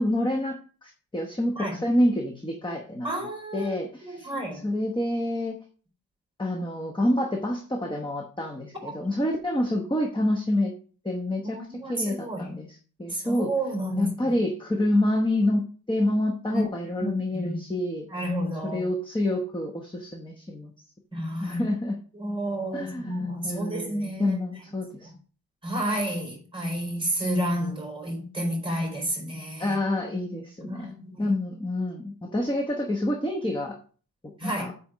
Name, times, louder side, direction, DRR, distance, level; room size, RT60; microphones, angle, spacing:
voice 1, 0.0-3.1 3.5-4.3 4.6-5.6 6.4-10.7 11.0-13.5 14.0-18.1 18.6-20.7 21.4-22.0 22.7-25.1 29.6-33.8 34.4-34.7, left 1 dB, 10° left, 1.0 m, -27 dB
voice 2, 3.0-3.7 4.0-4.6 11.4-12.5 13.1-14.3 16.5-16.6 17.0-17.7 18.1-18.8 21.1-21.6 22.2-24.4 25.6-29.8 30.6-31.2 34.4-34.7, right 1 dB, 15° right, 4.2 m, -30 dB
8.5 x 4.3 x 6.2 m
wide cardioid pair, 140°, 39 cm